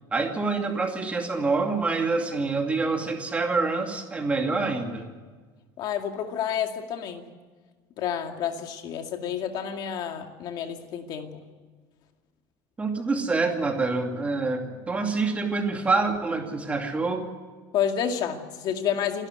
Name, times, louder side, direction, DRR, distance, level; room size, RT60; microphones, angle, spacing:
voice 1, 0.1-5.0 12.8-17.3, right 3 dB, 15° right, 3 dB, 2.5 m, -26 dB
voice 2, 5.8-7.3 8.0-11.4 17.7-19.3, left 8 dB, 45° left, 5 dB, 2.3 m, -29 dB
27.5 x 12.5 x 9.6 m, 1.4 s
cardioid pair, 165°, 10 cm